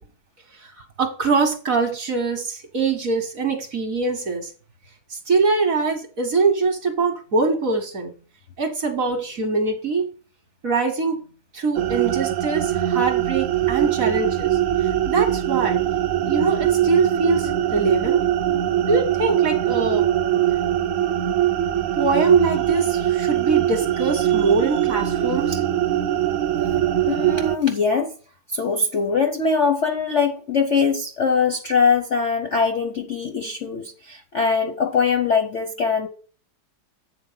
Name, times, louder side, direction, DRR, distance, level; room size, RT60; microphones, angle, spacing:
voice 1, 0.6-4.5 5.1-8.1 8.6-10.1 10.6-11.2 11.5-15.8 16.2-18.2 18.9-20.1 21.9-25.6, right 4 dB, 50° right, 1.3 m, -23 dB
sound 1, 11.7-27.6, right 11 dB, 75° right, 0.7 m, -22 dB
voice 2, 27.0-28.1 28.5-36.1, left 5 dB, 50° left, 0.8 m, -22 dB
8.2 x 4.3 x 5.6 m
omnidirectional pair, 2.3 m